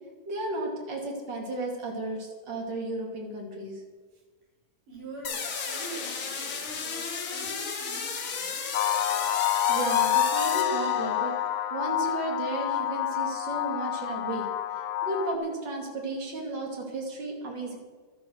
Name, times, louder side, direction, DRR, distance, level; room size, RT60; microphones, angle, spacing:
voice 1, 0.2-3.8 9.3-11.3 11.7-14.5 15.0-17.8, right 2 dB, 35° right, 0 dB, 2.9 m, -34 dB
voice 2, 4.9-8.6, right 3 dB, 70° right, -5 dB, 7.1 m, -44 dB
sound 1, 5.2-11.4, left 5 dB, 45° left, 1.9 m, -34 dB
sound 2, 8.7-15.4, left 11 dB, 70° left, 1.9 m, -28 dB
12.5 x 11.5 x 6.4 m, 1.4 s
omnidirectional pair, 3.9 m